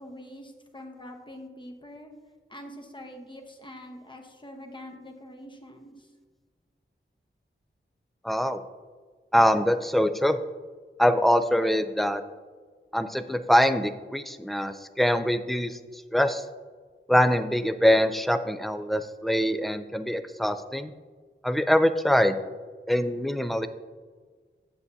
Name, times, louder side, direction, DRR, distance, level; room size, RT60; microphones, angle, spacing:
voice 1, 0.0-2.1 2.5-5.9, left 1 dB, 25° left, 3 dB, 1.0 m, -44 dB
voice 2, 8.2-8.6 9.3-10.4 11.0-12.2 12.9-16.5 17.1-20.9 21.4-22.4 22.9-23.7, equal, ahead, 9 dB, 0.4 m, -23 dB
8.2 x 8.2 x 2.7 m, 1.5 s
wide cardioid pair, 75°, 21 cm